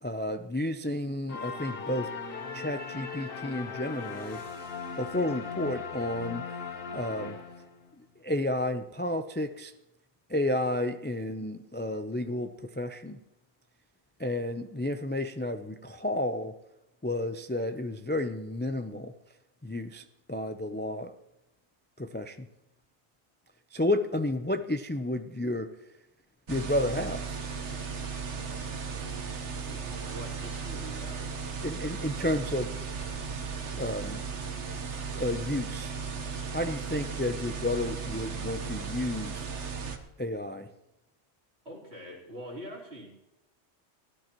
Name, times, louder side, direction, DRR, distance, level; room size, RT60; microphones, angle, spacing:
voice 1, 0.0-2.1 2.5-4.4 5.0-6.4 6.9-7.4 8.0-9.7 10.3-13.2 14.2-16.5 17.0-19.1 19.6-21.1 22.0-22.5 23.7-25.7 26.5-27.2 31.6-32.7 33.8-34.2 35.1-35.9 36.5-39.5 40.2-40.7, left 1 dB, 15° left, 8 dB, 0.4 m, -31 dB
sound 1, 1.3-7.9, left 5 dB, 60° left, 1.2 m, -38 dB
sound 2, 26.5-40.0, right 5 dB, 90° right, 1.5 m, -36 dB
voice 2, 29.6-31.3 32.2-32.3 41.7-43.1, equal, 65° right, -3 dB, 3.8 m, -44 dB
18.0 x 12.5 x 3.0 m, 0.93 s
omnidirectional pair, 1.1 m